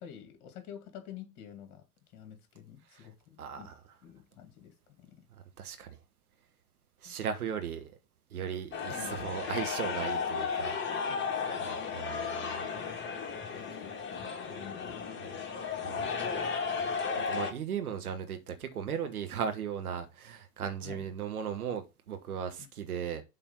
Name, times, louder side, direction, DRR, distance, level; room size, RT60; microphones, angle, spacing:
voice 1, 0.0-1.9 2.1-3.7 4.0-5.3 7.0-7.1 8.9-9.2 11.1-11.6 13.5-15.4 20.8-21.1 22.6-22.7, left 9 dB, 40° left, 2.5 m, -49 dB
voice 2, 3.4-3.7 5.6-6.0 7.0-7.9 8.3-10.7 11.7-12.6 15.8-16.0 17.2-23.2, right 7 dB, 70° right, 1.5 m, -37 dB
sound 1, 8.7-17.5, left 5 dB, 25° left, 2.1 m, -34 dB
7.8 x 4.1 x 5.4 m
figure-of-eight pair, 85°, 46 cm